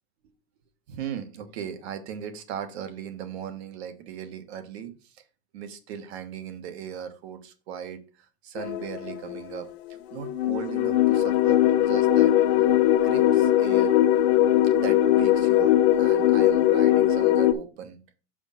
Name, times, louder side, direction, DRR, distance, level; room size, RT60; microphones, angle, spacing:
voice 1, 0.9-5.2 5.5-8.0 8.4-9.7 10.1-12.7 13.0-14.0 14.7-18.0, right 8 dB, 55° right, 8 dB, 1.4 m, -38 dB
sound 1, 8.6-9.6 10.1-17.5, left 12 dB, 55° left, 0.7 m, -20 dB
6.2 x 5.0 x 5.6 m, 0.35 s
supercardioid pair, 175°, 38 cm